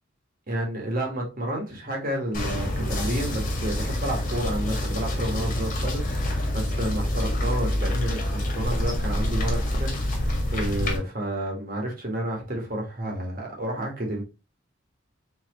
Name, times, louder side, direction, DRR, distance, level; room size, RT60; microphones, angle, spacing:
voice 1, 0.5-14.2, right 1 dB, 45° right, 1.7 m, -30 dB
sound 1, 2.3-11.0, left 1 dB, 40° left, 1.6 m, -27 dB
4.2 x 4.0 x 3.0 m
head